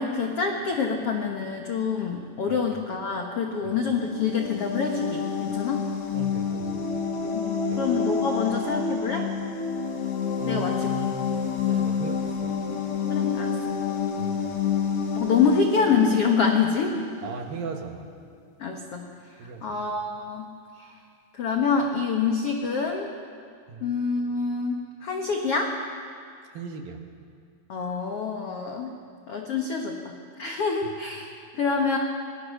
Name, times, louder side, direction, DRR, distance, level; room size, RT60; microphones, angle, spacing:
voice 1, 0.0-5.8 7.3-9.3 10.4-10.9 13.1-13.6 15.1-17.0 18.6-19.1 19.6-20.5 20.8-20.9 21.3-23.1 23.8-25.7 27.7-28.9 29.3-32.0, left 5 dB, 75° left, 2 dB, 1.3 m, -26 dB
sound 1, 3.8-17.4, left 6 dB, 50° left, 1.8 m, -28 dB
voice 2, 6.1-7.1 7.7-7.9 10.4-11.2 11.6-12.6 14.2-14.4 17.2-18.1 19.4-19.8 23.7-23.9 26.5-27.0, right 5 dB, 65° right, 4 dB, 2.9 m, -38 dB
24.0 x 20.5 x 6.6 m, 2.3 s
omnidirectional pair, 4.9 m